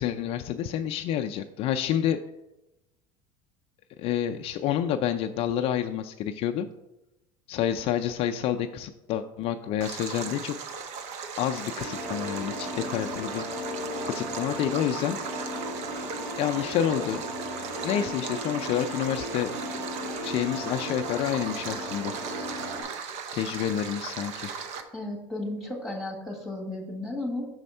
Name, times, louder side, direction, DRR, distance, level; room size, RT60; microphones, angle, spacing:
voice 1, 0.0-2.2 4.0-6.7 7.5-10.6 11.4-13.4 14.0-15.2 16.4-17.2 17.8-19.5 20.2-22.1 23.3-24.5, left 10 dB, 50° left, 5 dB, 0.4 m, -28 dB
Stream, 9.8-24.8, right 5 dB, 60° right, 0.8 m, -37 dB
sound 1, 11.7-22.8, equal, 85° right, 1.9 m, -36 dB
voice 2, 24.9-27.5, left 1 dB, ahead, -1 dB, 1.7 m, -34 dB
6.3 x 4.2 x 5.4 m, 0.96 s
supercardioid pair, 125°, 13 cm